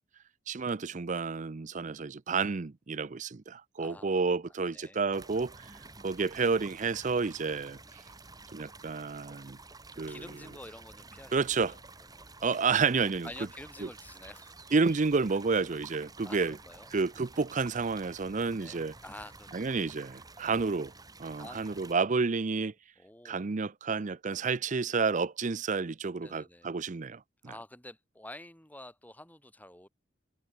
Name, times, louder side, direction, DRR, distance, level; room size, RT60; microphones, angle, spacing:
voice 1, 0.5-5.7 6.0-7.8 8.5-9.6 10.0-10.2 11.3-11.8 12.4-13.3 13.8-13.9 14.7-16.6 16.9-18.9 19.5-20.9 21.2-22.7 23.2-27.2, right 4 dB, 40° right, 0.5 m, -30 dB
voice 2, 3.8-4.2 4.7-5.0 9.9-11.8 12.1-12.3 13.2-14.7 16.2-16.9 18.6-19.7 20.4-20.6 21.3-22.0 23.0-23.5 24.4-24.6 26.2-26.7 27.4-29.9, left 1 dB, 10° left, 5.5 m, -49 dB
sound 1, 5.1-21.9, right 3 dB, 20° right, 5.6 m, -51 dB
head